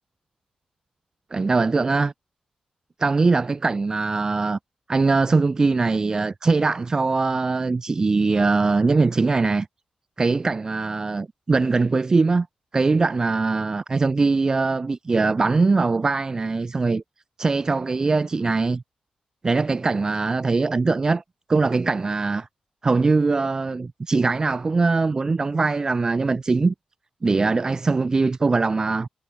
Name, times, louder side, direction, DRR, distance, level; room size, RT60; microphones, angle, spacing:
voice 1, 1.3-2.1 3.0-4.6 4.9-9.7 10.2-12.5 12.7-17.0 17.4-18.8 19.4-21.2 21.5-22.5 22.8-26.7 27.2-29.1, right 3 dB, 30° right, 0.5 m, -21 dB
wide cardioid pair, 130°, 2 cm